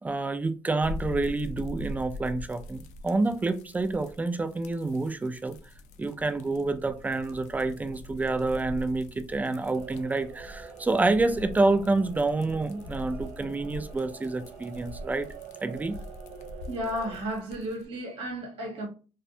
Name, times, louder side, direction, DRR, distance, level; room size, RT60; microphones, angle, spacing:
voice 1, 0.0-5.6 6.0-15.3 15.6-16.0, right 3 dB, 15° right, 0.3 m, -28 dB
sound 1, 0.8-17.9, left 1 dB, 70° left, 0.4 m, -43 dB
sound 2, 9.6-17.2, right 7 dB, 70° right, 0.5 m, -46 dB
voice 2, 16.7-18.9, equal, 45° right, 1.3 m, -33 dB
2.5 x 2.2 x 2.6 m
cardioid pair, 105°, 13 cm